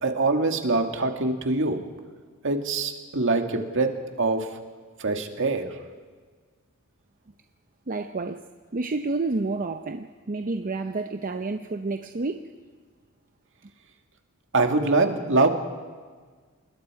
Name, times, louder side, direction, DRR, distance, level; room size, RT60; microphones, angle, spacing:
voice 1, 0.0-1.8 2.4-4.5 5.0-5.7 14.5-15.5, right 3 dB, 60° right, 5 dB, 1.8 m, -24 dB
voice 2, 7.9-8.4 8.7-12.5, right 3 dB, 40° right, 7 dB, 0.7 m, -29 dB
27.0 x 20.5 x 4.8 m, 1.5 s
head